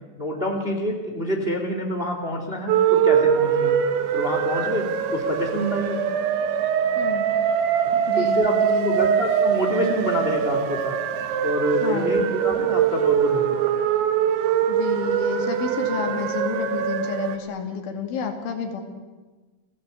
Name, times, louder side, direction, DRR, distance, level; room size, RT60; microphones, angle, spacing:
voice 1, 0.2-3.8 4.1-6.0 7.8-11.0 11.4-13.7, equal, 15° right, 3 dB, 2.5 m, -27 dB
sound 1, 2.7-17.4, right 8 dB, 75° right, 3.8 m, -23 dB
voice 2, 8.1-9.0 11.8-12.2 14.7-18.8, left 7 dB, 80° left, 4 dB, 5.0 m, -30 dB
30.0 x 18.0 x 8.4 m, 1.3 s
omnidirectional pair, 5.4 m